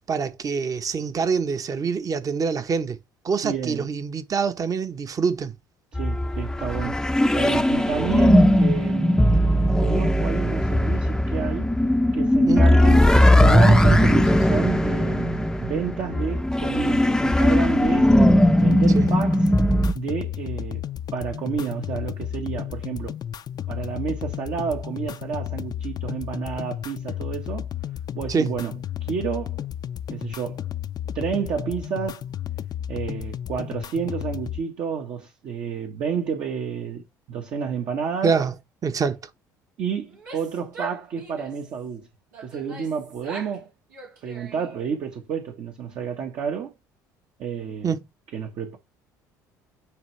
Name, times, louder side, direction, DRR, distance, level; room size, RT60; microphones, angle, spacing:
voice 1, 0.1-3.0 3.2-5.5 12.5-12.6 18.9-19.1 28.3-28.5 38.2-38.5 38.8-39.2 47.8-48.0, right 5 dB, 40° right, 1.2 m, -25 dB
voice 2, 3.4-3.9 5.9-7.1 7.3-9.2 9.8-11.7 12.1-18.1 18.6-19.5 19.9-20.8 21.1-23.2 23.7-27.7 28.1-29.6 30.1-30.6 31.1-32.2 32.9-38.4 39.8-42.1 42.4-43.7 44.2-46.7 47.4-47.9 48.3-48.8, right 7 dB, 55° right, 1.5 m, -30 dB
sound 1, 5.9-19.9, left 1 dB, 5° left, 0.7 m, -18 dB
sound 2, 18.6-34.6, left 10 dB, 45° left, 0.6 m, -33 dB
Female speech woman speaking / Yell, 40.1-41.7 42.3-43.6 43.9-44.9, right 4 dB, 90° right, 2.7 m, -41 dB
9.2 x 3.5 x 3.3 m
hypercardioid pair, 60°, 10 cm